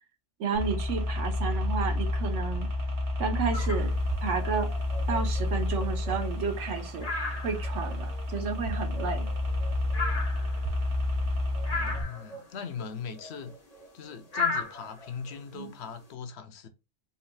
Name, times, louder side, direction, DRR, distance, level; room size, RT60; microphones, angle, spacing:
voice 1, 0.4-2.7 3.2-3.9 4.2-4.7 5.1-7.1 7.4-9.3 15.5-15.7, right 5 dB, 90° right, 1.2 m, -32 dB
sound 1, 0.5-12.0, left 1 dB, 70° right, 1.4 m, -30 dB
sound 2, 3.5-4.0 4.3-6.7 7.0-8.2 8.6-11.2 11.5-12.6 12.9-15.8, left 3 dB, 35° left, 1.1 m, -36 dB
voice 2, 11.7-13.5 13.9-16.7, left 6 dB, 70° left, 0.9 m, -40 dB
4.0 x 3.9 x 2.3 m
omnidirectional pair, 1.2 m